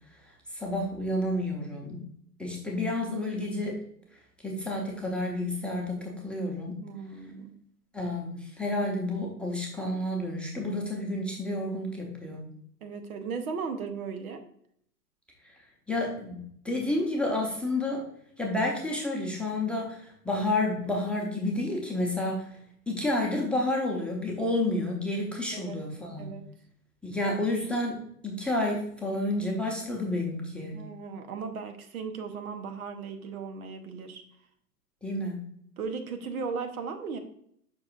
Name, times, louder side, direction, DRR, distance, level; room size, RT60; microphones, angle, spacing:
voice 1, 0.1-2.0 2.4-3.8 4.1-6.8 7.9-12.5 15.4-18.0 18.4-22.6 22.9-26.3 27.0-30.8 35.0-35.4, left 1 dB, ahead, -1 dB, 0.9 m, -30 dB
voice 2, 6.8-7.5 12.8-14.4 25.5-25.8 26.2-26.4 30.7-34.2 35.8-37.2, right 5 dB, 60° right, 7 dB, 1.1 m, -36 dB
7.4 x 5.9 x 2.5 m, 0.68 s
hypercardioid pair, 110°, 48 cm